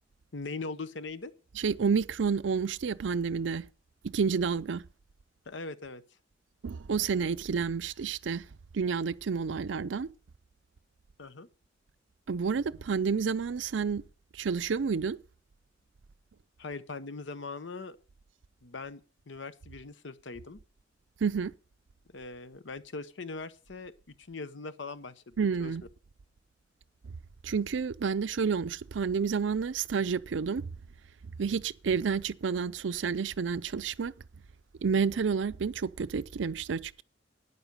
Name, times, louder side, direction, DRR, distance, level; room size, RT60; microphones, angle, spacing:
voice 1, 0.3-1.3 5.5-6.0 11.2-11.5 16.6-18.0 18.6-19.0 19.3-20.6 22.1-23.9 24.2-25.3 25.6-25.7, left 3 dB, 70° left, 0.8 m, -40 dB
voice 2, 1.6-3.6 4.1-4.8 6.6-8.4 8.7-10.1 12.3-14.0 14.3-15.2 21.2-21.5 25.4-25.8 27.4-30.7 31.4-34.1 34.8-37.0, right 5 dB, 75° right, 0.5 m, -30 dB
12.0 x 9.7 x 5.2 m
head